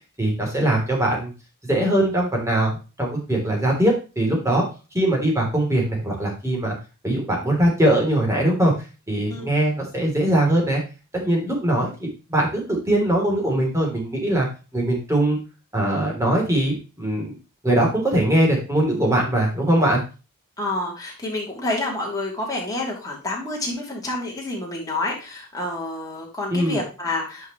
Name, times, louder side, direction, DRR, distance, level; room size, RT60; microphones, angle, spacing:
voice 1, 0.2-1.3 1.6-4.6 4.9-6.7 7.0-8.7 9.1-10.8 11.1-14.5 14.7-15.4 15.7-17.3 17.6-20.0 26.5-26.8, right 1 dB, 15° right, -1 dB, 3.2 m, -21 dB
voice 2, 20.6-27.5, left 2 dB, 15° left, -3 dB, 3.0 m, -28 dB
10.0 x 5.8 x 3.1 m, 0.31 s
head